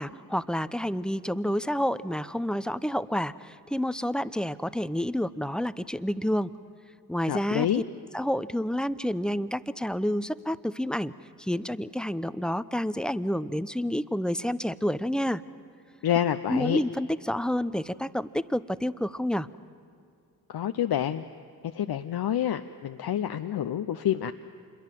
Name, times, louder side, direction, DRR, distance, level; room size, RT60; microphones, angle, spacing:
voice 1, 0.0-6.5 7.1-7.8 8.1-11.1 11.4-15.4 16.5-19.5, equal, ahead, 15 dB, 0.8 m, -29 dB
voice 2, 7.3-7.8 16.0-16.8 20.5-21.2 21.7-24.3, left 10 dB, 60° left, 8 dB, 0.8 m, -28 dB
26.5 x 22.0 x 7.6 m, 2.4 s
supercardioid pair, 40°, 42 cm